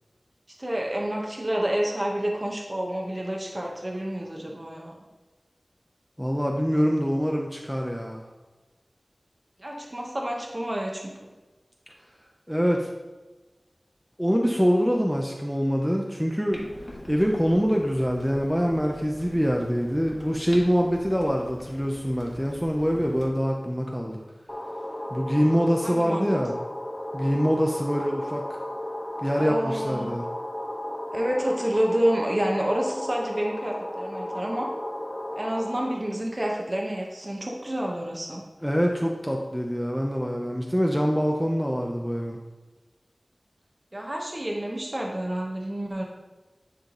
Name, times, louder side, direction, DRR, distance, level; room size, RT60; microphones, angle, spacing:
voice 1, 0.6-4.9 9.6-11.3 25.8-26.4 29.4-30.1 31.1-34.7 35.3-38.4 43.9-46.1, right 1 dB, 35° right, 0 dB, 1.1 m, -29 dB
voice 2, 6.2-8.3 12.5-12.9 14.2-16.6 17.1-24.2 25.1-26.5 27.1-28.4 29.2-30.2 38.6-42.4, equal, ahead, 0 dB, 0.7 m, -24 dB
Clock, 16.5-23.3, left 1 dB, 45° left, 1.6 m, -44 dB
sound 1, 24.5-36.0, left 1 dB, 25° left, 0.9 m, -34 dB
9.7 x 3.7 x 3.9 m, 1.2 s
wide cardioid pair, 50°, 0 cm